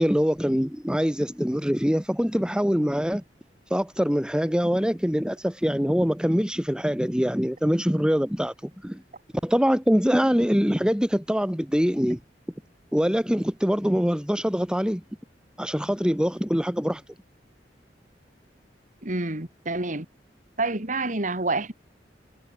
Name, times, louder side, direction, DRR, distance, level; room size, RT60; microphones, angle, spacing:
voice 1, 0.0-3.2 3.7-9.0 9.4-12.2 12.9-15.0 15.6-17.0, equal, 5° right, 2.0 m, -24 dB
voice 2, 19.0-20.1 20.6-21.7, right 2 dB, 45° right, 3.0 m, -28 dB
head